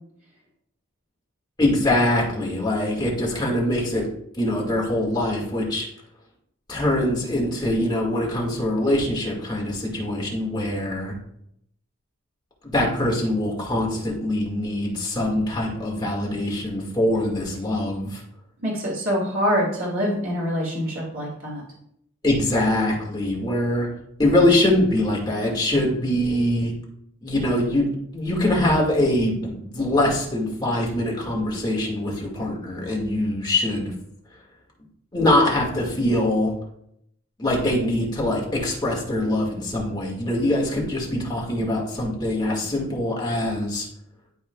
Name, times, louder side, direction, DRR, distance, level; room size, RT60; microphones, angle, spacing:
voice 1, 1.6-4.1 4.4-5.9 6.7-11.2 12.6-18.2 22.2-23.9 24.2-26.7 27.2-33.9 35.1-36.5 37.4-43.9, left 1 dB, 20° left, -2 dB, 1.8 m, -23 dB
voice 2, 18.6-21.6, equal, 80° right, -3 dB, 2.2 m, -25 dB
11.5 x 4.7 x 2.3 m, 0.73 s
head